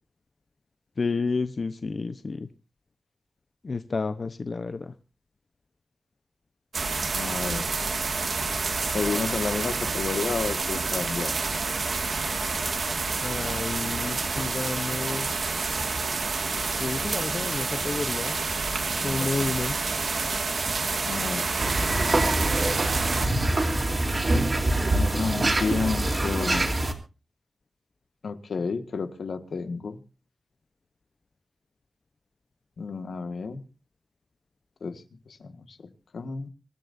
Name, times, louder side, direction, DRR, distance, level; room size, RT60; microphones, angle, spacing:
voice 1, 1.0-2.5 3.6-4.9 13.2-15.3 16.8-18.3 19.0-19.8, left 4 dB, 50° left, 10 dB, 0.9 m, -30 dB
sound 1, 6.7-23.3, right 4 dB, 60° right, 2.0 m, -28 dB
voice 2, 7.1-7.6 8.9-11.3 19.0-19.5 21.0-21.5 24.9-26.7 28.2-30.0 32.8-33.6 34.8-36.5, left 4 dB, 80° left, 9 dB, 1.7 m, -31 dB
sound 2, 21.6-26.9, right 2 dB, 40° right, 3.4 m, -24 dB
26.0 x 13.0 x 2.7 m, 0.33 s
wide cardioid pair, 80°, 0 cm